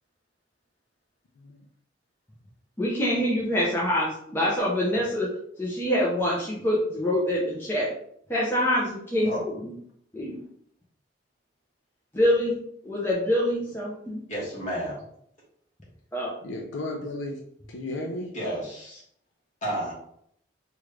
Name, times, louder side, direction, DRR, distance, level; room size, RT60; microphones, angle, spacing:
voice 1, 2.8-5.3 5.6-7.9 8.3-9.7 10.1-10.4 12.1-12.6 12.8-14.2 16.1-16.3, left 1 dB, 10° left, -5 dB, 0.6 m, -25 dB
voice 2, 14.3-15.0 18.3-19.0 19.6-19.9, right 1 dB, 40° left, -6 dB, 1.3 m, -31 dB
voice 3, 16.4-17.4 17.7-18.3, left 1 dB, 80° left, 1 dB, 0.5 m, -34 dB
3.1 x 2.4 x 3.2 m, 0.68 s
head